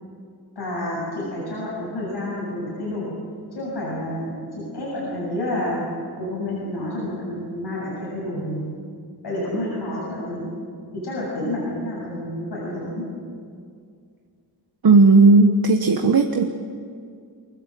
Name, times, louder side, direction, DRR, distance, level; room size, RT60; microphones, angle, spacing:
voice 1, 0.6-3.1 3.5-4.4 4.7-5.8 6.2-8.7 9.2-10.5 11.0-13.0, left 1 dB, 85° left, -6 dB, 7.7 m, -29 dB
voice 2, 14.8-16.4, right 3 dB, 65° right, 4 dB, 1.3 m, -14 dB
24.0 x 20.5 x 7.8 m, 2.2 s
wide cardioid pair, 120°, 40 cm